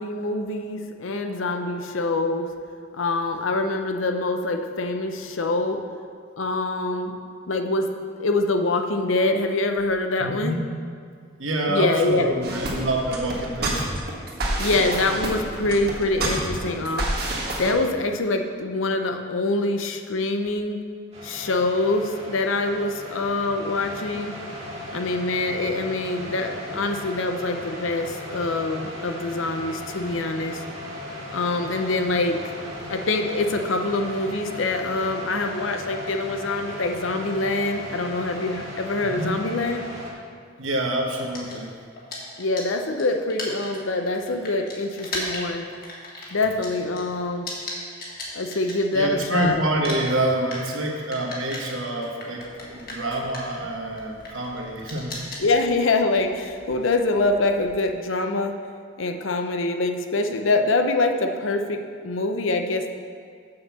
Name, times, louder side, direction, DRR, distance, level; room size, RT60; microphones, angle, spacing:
voice 1, 0.0-2.5 2.9-5.8 6.4-7.2 7.5-10.5 11.7-12.3 14.6-17.1 17.6-20.8 21.2-24.4 24.9-30.6 31.3-32.4 32.9-39.8 42.4-45.7 46.3-47.5 48.3-49.6 55.4-58.5 59.0-62.9, left 2 dB, 90° left, 5 dB, 0.7 m, -25 dB
voice 2, 10.2-10.6 11.4-13.9 39.1-39.3 40.6-41.7 48.9-55.2, right 1 dB, 85° right, 0 dB, 1.3 m, -27 dB
sound 1, 12.4-17.7, right 1 dB, 50° right, 1.6 m, -28 dB
sound 2, 21.1-40.1, left 1 dB, 30° right, 1.7 m, -37 dB
sound 3, 41.2-49.4 49.6-57.9, left 2 dB, 45° left, 1.7 m, -38 dB
6.8 x 5.5 x 7.1 m, 2.2 s
head